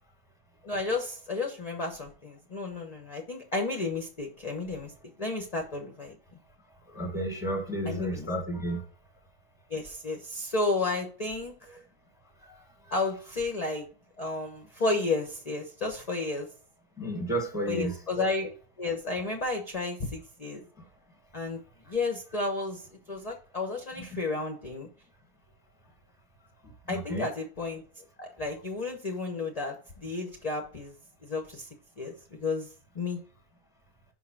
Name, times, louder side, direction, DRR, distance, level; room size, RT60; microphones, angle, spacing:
voice 1, 0.6-4.9 5.2-6.1 7.8-8.3 9.7-11.8 12.9-13.9 14.2-16.5 17.7-20.6 21.3-21.6 21.9-24.9 26.9-30.9 31.2-31.7 32.0-32.7 32.9-33.2, left 3 dB, 30° left, 0.7 m, -32 dB
voice 2, 6.9-8.8 17.0-17.9 24.1-24.2 26.9-27.3, right 1 dB, ahead, 1.2 m, -31 dB
5.6 x 4.6 x 5.8 m
omnidirectional pair, 1.8 m